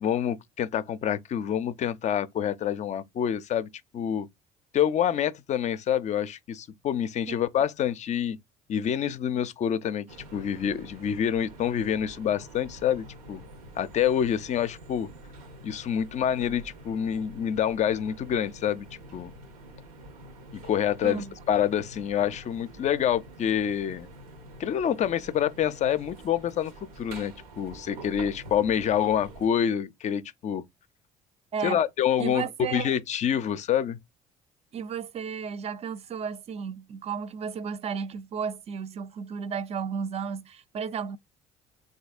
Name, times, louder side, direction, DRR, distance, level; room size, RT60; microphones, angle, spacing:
voice 1, 0.0-4.3 4.7-8.4 8.7-10.1 10.3-13.4 13.8-15.1 15.6-18.9 19.1-19.3 20.5-24.1 24.6-30.6 31.6-34.0, left 9 dB, 40° left, 0.4 m, -27 dB
sound 1, 10.1-29.5, right 1 dB, 80° right, 0.7 m, -47 dB
voice 2, 21.0-21.3 31.5-31.8 32.2-32.9 34.7-41.2, right 7 dB, 35° right, 0.4 m, -33 dB
3.3 x 2.7 x 2.4 m
hypercardioid pair, 55°, 18 cm